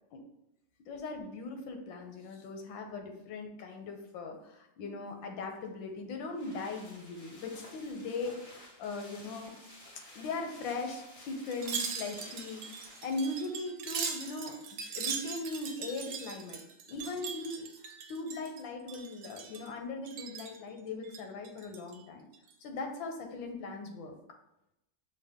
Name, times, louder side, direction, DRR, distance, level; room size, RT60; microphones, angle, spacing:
voice 1, 0.9-9.5 10.1-14.6 14.9-16.6 16.9-17.7 18.1-22.2 22.6-24.2, left 3 dB, 85° left, 4 dB, 1.5 m, -39 dB
sound 1, 5.6-13.7 14.0-14.1, left 1 dB, 40° left, 0.5 m, -54 dB
Wind chime, 11.5-18.6 18.9-19.7 20.1-20.6 21.0-22.0 22.3-22.5, right 6 dB, 70° right, 1.1 m, -40 dB
6.2 x 2.2 x 3.5 m, 0.86 s
omnidirectional pair, 2.0 m